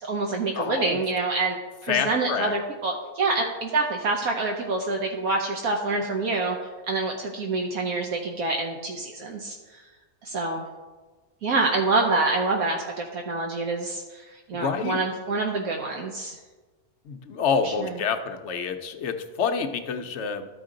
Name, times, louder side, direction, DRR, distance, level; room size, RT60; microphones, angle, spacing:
voice 1, 0.0-6.6 6.9-9.8 10.2-10.6 11.4-16.4 17.6-17.9, right 3 dB, 75° right, 1 dB, 1.2 m, -27 dB
voice 2, 0.5-1.0 1.9-2.5 14.5-15.0 17.0-20.5, left 6 dB, 60° left, 7 dB, 0.8 m, -27 dB
13.0 x 5.0 x 3.8 m, 1.3 s
omnidirectional pair, 1.6 m